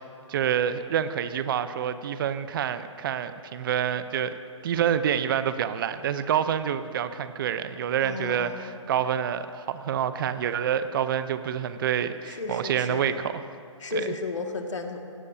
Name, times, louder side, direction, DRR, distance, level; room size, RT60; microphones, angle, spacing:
voice 1, 0.3-4.3 4.6-13.3 13.9-14.1, right 9 dB, 45° right, 11 dB, 0.8 m, -27 dB
voice 2, 8.0-8.8 12.2-13.2 13.8-15.0, left 4 dB, 70° left, 3 dB, 2.2 m, -33 dB
29.0 x 17.5 x 2.9 m, 2.3 s
figure-of-eight pair, 140°, 16 cm